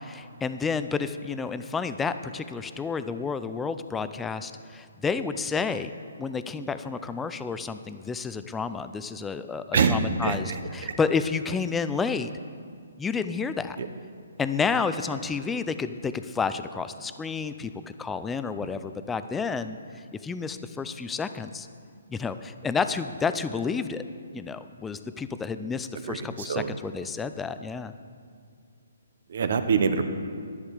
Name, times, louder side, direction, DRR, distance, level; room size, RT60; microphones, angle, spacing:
voice 1, 0.0-5.9 6.2-12.3 13.0-13.8 14.4-17.7 18.0-19.8 20.2-21.7 22.1-24.0 24.3-27.9, left 5 dB, 10° left, 11 dB, 0.4 m, -30 dB
voice 2, 9.7-10.9 13.8-13.9 26.1-26.7 29.3-30.0, right 5 dB, 60° right, 9 dB, 1.0 m, -25 dB
11.0 x 10.5 x 4.9 m, 2.1 s
hypercardioid pair, 150°, 0 cm